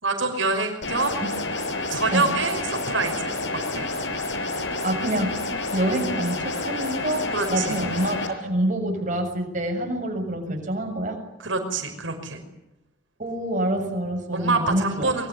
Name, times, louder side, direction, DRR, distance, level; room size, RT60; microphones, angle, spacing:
voice 1, 0.0-1.3 1.9-3.3 3.7-3.9 7.3-7.8 11.4-12.4 14.3-15.3, right 3 dB, 80° right, 4 dB, 5.7 m, -26 dB
sound 1, 0.8-8.3, left 2 dB, 65° left, 6.5 m, -29 dB
voice 2, 4.8-5.5 5.7-11.2 13.2-15.1, right 1 dB, 40° right, 2 dB, 7.1 m, -26 dB
25.0 x 24.0 x 9.6 m, 0.90 s
head